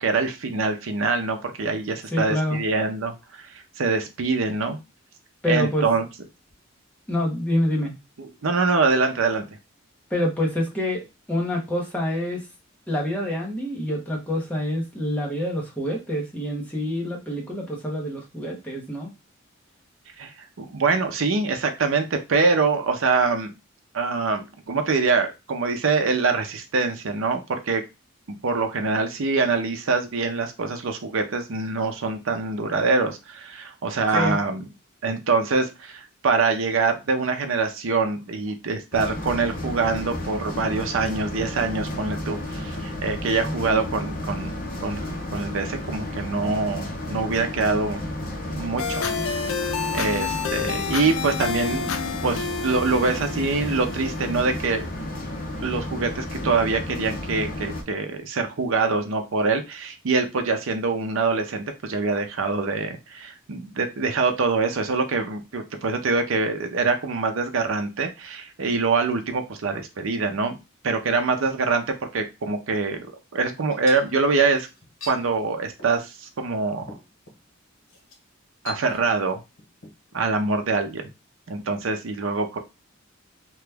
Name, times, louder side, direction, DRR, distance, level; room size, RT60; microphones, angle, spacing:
voice 1, 0.0-4.8 5.5-6.0 8.2-9.5 20.2-23.5 23.9-27.8 28.3-34.7 35.0-44.6 44.8-48.0 48.6-49.4 49.9-54.8 55.6-70.6 70.8-74.7 75.1-76.9 78.6-79.4 80.1-81.1 81.5-82.6, right 4 dB, 70° right, 6 dB, 0.6 m, -24 dB
voice 2, 2.1-2.6 5.4-5.8 7.1-7.9 10.1-12.4 12.9-19.1 34.1-34.4, left 1 dB, 10° left, -2 dB, 0.9 m, -26 dB
sound 1, 38.9-57.8, left 1 dB, 45° left, 0.8 m, -32 dB
sound 2, 48.8-54.8, left 6 dB, 90° left, 0.4 m, -30 dB
sound 3, 73.7-75.2 75.8-76.0 76.4-76.5 76.8-77.4 77.9-78.2 78.7-79.3 79.6-79.9, left 2 dB, 70° left, 1.0 m, -42 dB
2.9 x 2.3 x 3.3 m, 0.25 s
head